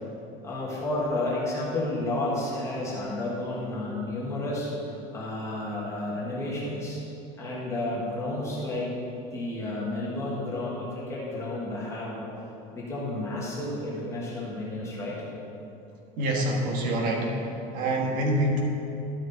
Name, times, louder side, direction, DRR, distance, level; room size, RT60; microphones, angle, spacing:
voice 1, 0.4-4.7 5.1-7.0 7.4-8.9 9.3-12.3 12.7-15.2, left 2 dB, 15° left, -6 dB, 1.4 m, -31 dB
voice 2, 16.2-17.5 17.7-18.6, right 1 dB, 45° right, 0 dB, 1.4 m, -26 dB
12.5 x 6.3 x 3.9 m, 2.9 s
cardioid pair, 180°, 19 cm